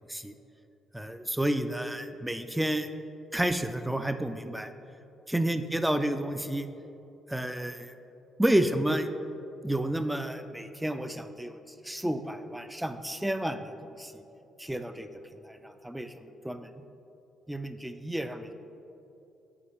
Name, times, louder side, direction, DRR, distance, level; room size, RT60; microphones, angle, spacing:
voice 1, 0.9-2.9 3.3-4.7 5.3-6.7 7.3-8.0 8.4-9.1 9.6-11.6 11.8-14.2 14.6-15.1 15.5-16.7 17.5-18.5, right 1 dB, 5° right, 9 dB, 0.4 m, -30 dB
8.5 x 4.8 x 3.4 m, 2.8 s
hypercardioid pair, 45°, 0 cm